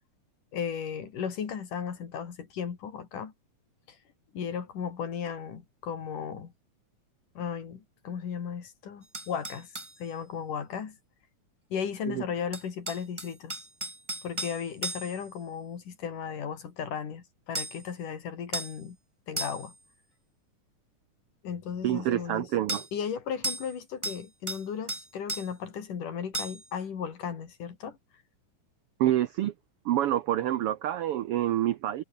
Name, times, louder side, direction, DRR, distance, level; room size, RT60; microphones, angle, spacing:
voice 1, 0.5-3.3 3.9-4.0 4.3-6.5 7.4-9.7 10.0-11.0 11.7-13.7 14.2-19.0 19.3-19.7 21.4-22.5 22.9-28.0, left 7 dB, 80° left, 4.6 m, -35 dB
sound 1, 9.1-10.0 12.5-15.3 17.5-17.9 18.5-18.8 19.4-19.8 22.7-22.9 23.4-23.7 24.0-24.6 24.9-25.5 26.3-26.7, right 2 dB, 15° right, 1.4 m, -35 dB
voice 2, 21.8-22.9 29.0-29.5 29.8-32.0, right 12 dB, 90° right, 1.3 m, -27 dB
omnidirectional pair, 3.6 m